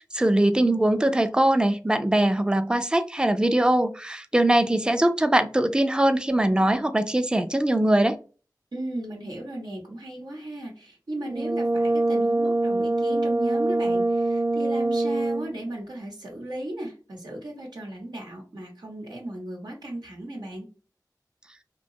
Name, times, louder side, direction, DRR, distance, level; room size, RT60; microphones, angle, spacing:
voice 1, 0.1-8.2, right 1 dB, 10° right, 0.3 m, -21 dB
voice 2, 8.7-20.7, right 1 dB, 90° right, 0.8 m, -36 dB
Brass instrument, 11.3-15.6, right 2 dB, 55° right, 0.7 m, -24 dB
2.8 x 2.2 x 2.6 m
wide cardioid pair, 45°, 7 cm